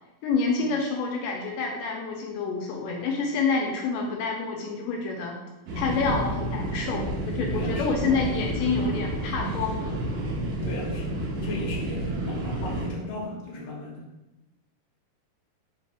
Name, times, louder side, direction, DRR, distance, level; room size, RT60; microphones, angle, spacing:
voice 1, 0.2-5.4 5.8-9.9, left 4 dB, 85° left, 1 dB, 2.2 m, -28 dB
sound 1, 5.7-12.9, right 1 dB, 80° right, 1.6 m, -30 dB
voice 2, 7.5-8.2 10.4-14.0, left 1 dB, 65° left, -4 dB, 1.9 m, -36 dB
5.1 x 2.8 x 3.3 m, 1.0 s
omnidirectional pair, 3.8 m